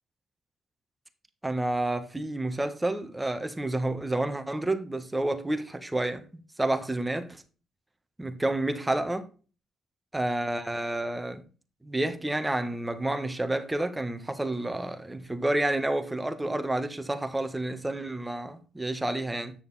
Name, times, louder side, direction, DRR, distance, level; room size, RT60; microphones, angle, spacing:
voice 1, 1.4-6.2 6.6-7.4 8.2-9.2 10.1-11.4 11.8-19.5, right 1 dB, 10° right, 1.5 m, -29 dB
9.1 x 6.8 x 4.2 m
cardioid pair, 90°, 0 cm